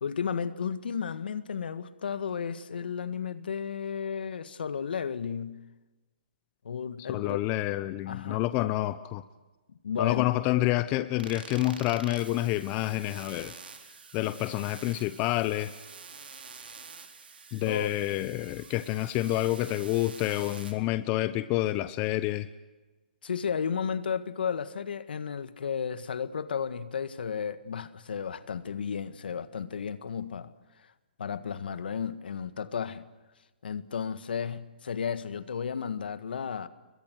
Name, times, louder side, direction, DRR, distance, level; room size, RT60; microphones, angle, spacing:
voice 1, 0.0-5.6 6.6-7.4 8.1-8.4 9.8-10.3 17.6-17.9 23.2-30.5 30.8-30.9 31.2-33.0 33.6-36.7, left 7 dB, 70° left, 12 dB, 1.7 m, -33 dB
voice 2, 7.1-9.2 10.0-13.5 14.1-15.7 17.5-22.5, left 16 dB, 25° left, 13 dB, 0.8 m, -28 dB
sound 1, 11.2-20.7, right 5 dB, 80° right, 3.8 m, -47 dB
29.5 x 22.5 x 6.3 m, 1.2 s
hypercardioid pair, 145°, 5 cm